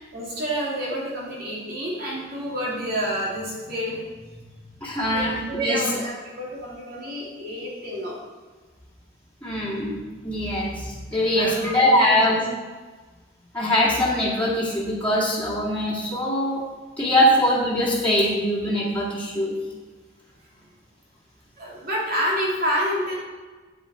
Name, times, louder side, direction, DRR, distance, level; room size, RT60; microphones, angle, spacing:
voice 1, 0.1-4.6 4.9-8.2 11.1-12.4 21.6-23.2, equal, 50° right, -5 dB, 3.0 m, -29 dB
voice 2, 4.8-5.8 9.4-10.0 10.2-12.4 13.5-16.6 17.0-19.6, left 1 dB, 10° left, -9 dB, 2.2 m, -22 dB
9.5 x 7.2 x 4.4 m, 1.3 s
head